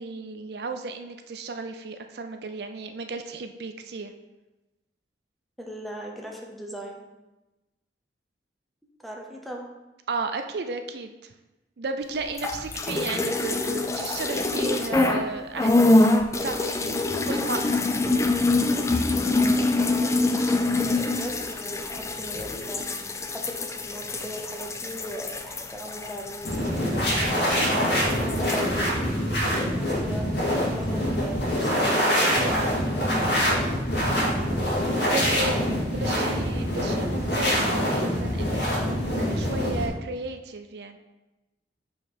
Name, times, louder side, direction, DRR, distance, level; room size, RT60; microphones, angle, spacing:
voice 1, 0.0-4.1 10.1-11.3 11.8-17.8 28.1-28.5 35.1-41.0, right 3 dB, 65° right, 7 dB, 0.4 m, -34 dB
voice 2, 5.6-7.0 9.0-9.7 18.0-18.4 19.4-22.9 23.3-26.9 28.2-29.1 29.4-32.6 35.4-36.3, right 1 dB, ahead, 0 dB, 0.8 m, -38 dB
sound 1, 12.3-15.3 15.6-27.5 27.7-28.7, left 2 dB, 15° left, 0.4 m, -25 dB
sound 2, 26.4-39.9, equal, 85° left, 2.0 m, -25 dB
5.0 x 4.7 x 5.5 m, 1.0 s
head